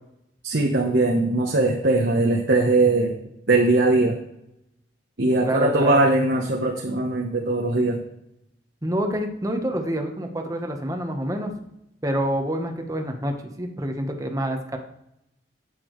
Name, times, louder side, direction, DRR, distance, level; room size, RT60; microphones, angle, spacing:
voice 1, 0.4-3.2 3.5-4.2 5.2-8.0, right 2 dB, 70° right, 0 dB, 1.1 m, -20 dB
voice 2, 5.4-5.9 8.8-11.5 12.0-14.8, equal, 20° right, 4 dB, 1.2 m, -27 dB
10.5 x 8.5 x 3.2 m, 0.81 s
head